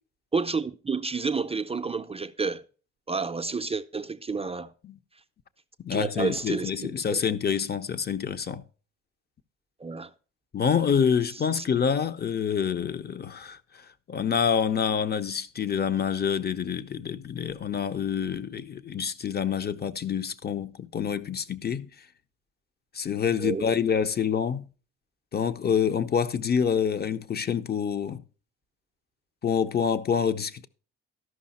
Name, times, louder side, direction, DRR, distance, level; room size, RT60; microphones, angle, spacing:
voice 1, 0.3-2.6 3.1-4.7 5.9-7.2 9.8-10.1 11.5-11.6 23.4-23.7, right 4 dB, 20° right, 0.4 m, -30 dB
voice 2, 5.8-8.6 10.5-13.6 14.1-21.9 22.9-24.7 25.3-28.2 29.4-30.7, left 7 dB, 35° left, 0.7 m, -27 dB
12.5 x 5.6 x 4.1 m
cardioid pair, 90°, 30 cm